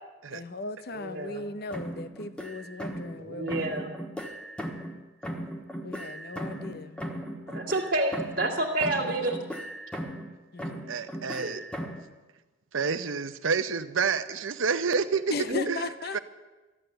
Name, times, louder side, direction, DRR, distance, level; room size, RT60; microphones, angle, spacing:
voice 1, 0.3-3.9 5.8-7.0 10.5-10.9 15.3-16.2, left 3 dB, 50° left, 13 dB, 0.7 m, -37 dB
voice 2, 0.9-1.5 3.2-3.9 7.5-9.4 11.4-11.6 15.5-15.7, right 2 dB, 45° right, -2 dB, 2.1 m, -29 dB
sound 1, 1.7-3.2 3.5-5.0 5.2-8.5 8.8-10.3 10.6-12.1, equal, 5° left, 1.4 m, -37 dB
voice 3, 10.9-11.6 12.7-15.3 15.7-15.9 16.1-16.2, right 5 dB, 80° right, 11 dB, 0.8 m, -28 dB
13.5 x 11.0 x 7.9 m, 1.2 s
head